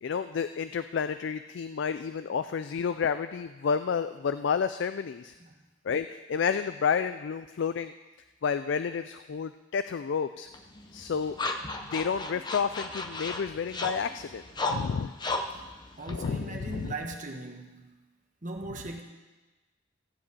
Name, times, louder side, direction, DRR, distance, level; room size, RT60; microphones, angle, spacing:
voice 1, 0.0-5.3 5.8-7.9 8.4-10.5 10.9-11.4 11.9-14.4 14.7-15.1 16.1-16.9, left 6 dB, 65° left, 12 dB, 0.3 m, -30 dB
sound 1, 10.5-17.0, left 2 dB, 20° left, 0.7 m, -36 dB
voice 2, 16.0-17.9 18.4-19.0, right 2 dB, 40° right, 2 dB, 1.4 m, -39 dB
15.0 x 5.1 x 8.3 m, 1.2 s
head